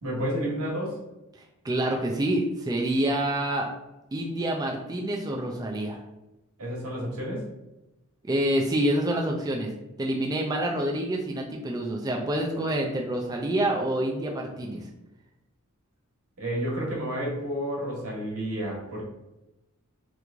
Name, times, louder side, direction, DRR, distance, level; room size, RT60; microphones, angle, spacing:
voice 1, 0.0-1.0 6.6-7.4 16.4-19.0, equal, 80° right, -4 dB, 1.3 m, -30 dB
voice 2, 1.6-3.7 4.1-6.0 8.2-9.7 10.0-14.8, right 1 dB, 15° right, 0 dB, 0.3 m, -27 dB
3.0 x 2.5 x 3.4 m, 0.96 s
head